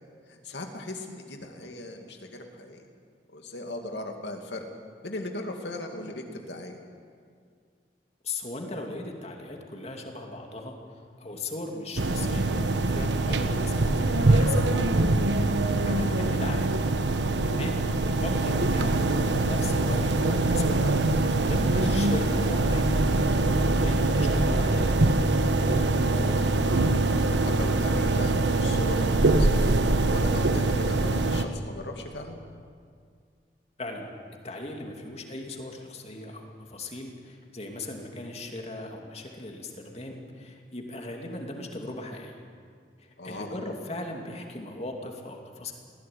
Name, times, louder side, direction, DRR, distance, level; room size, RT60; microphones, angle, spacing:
voice 1, 0.3-2.8 3.3-4.7 5.0-6.8 15.8-16.0 26.0-26.5 27.2-29.7 30.1-32.4 43.2-43.6, left 1 dB, 75° left, 3 dB, 2.5 m, -38 dB
voice 2, 8.2-10.8 11.2-15.0 15.4-16.7 17.4-20.9 21.4-25.0 33.8-34.1 34.4-42.3 43.0-45.7, left 2 dB, 35° left, 2 dB, 2.6 m, -38 dB
sound 1, 12.0-31.4, right 2 dB, 85° right, 1.2 m, -23 dB
20.5 x 16.0 x 9.6 m, 2.1 s
head